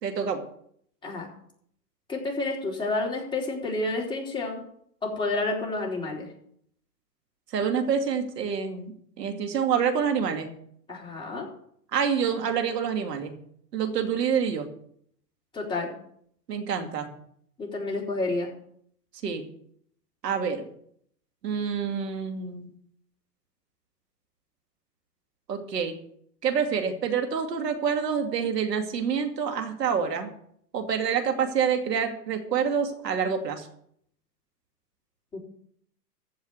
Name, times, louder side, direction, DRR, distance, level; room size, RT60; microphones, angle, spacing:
voice 1, 0.0-0.5 7.5-10.5 11.9-13.3 13.7-14.7 16.5-17.1 19.2-19.4 20.2-20.6 21.4-22.7 25.5-26.0 26.4-30.3 30.7-33.7, right 7 dB, 80° right, 5 dB, 2.6 m, -27 dB
voice 2, 2.1-4.6 5.0-6.3 10.9-11.5 15.5-15.9 17.6-18.5 35.3-35.4, left 2 dB, 10° left, -4 dB, 4.0 m, -29 dB
15.0 x 5.6 x 9.4 m, 0.66 s
hypercardioid pair, 135°, 48 cm